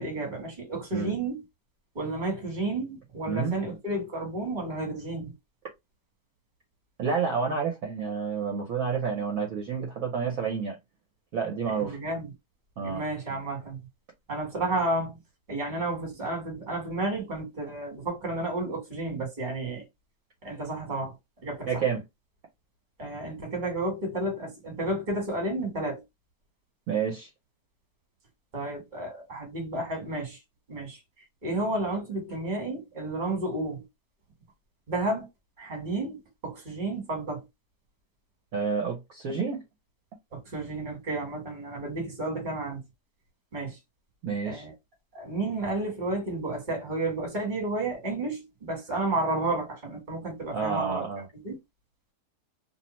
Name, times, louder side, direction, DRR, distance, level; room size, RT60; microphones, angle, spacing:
voice 1, 0.0-1.4 1.9-5.3 11.7-12.3 12.8-13.8 14.3-15.2 15.5-19.8 20.4-21.1 21.4-21.8 23.0-26.0 28.5-30.4 30.7-31.0 31.4-33.8 34.9-35.3 35.6-37.4 40.3-42.8 43.5-43.8 44.4-44.7 45.1-51.0 51.3-51.5, right 2 dB, 30° right, 1.3 m, -31 dB
voice 2, 3.3-3.6 7.0-10.8 11.3-12.0 12.8-13.0 21.7-22.0 26.9-27.3 38.5-39.6 44.2-44.6 50.5-51.3, right 6 dB, 65° right, 1.0 m, -29 dB
2.7 x 2.0 x 2.9 m
omnidirectional pair, 1.7 m